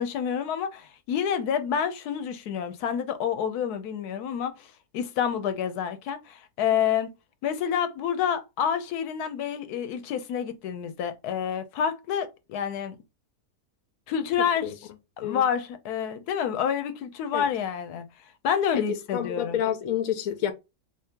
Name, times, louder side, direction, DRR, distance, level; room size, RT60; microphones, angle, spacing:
voice 1, 0.0-7.1 7.4-13.0 14.1-14.7 15.2-18.0 18.4-19.6, left 8 dB, 85° left, 1.1 m, -28 dB
voice 2, 18.7-20.5, left 10 dB, 65° left, 1.0 m, -28 dB
3.4 x 2.8 x 3.5 m
omnidirectional pair, 1.6 m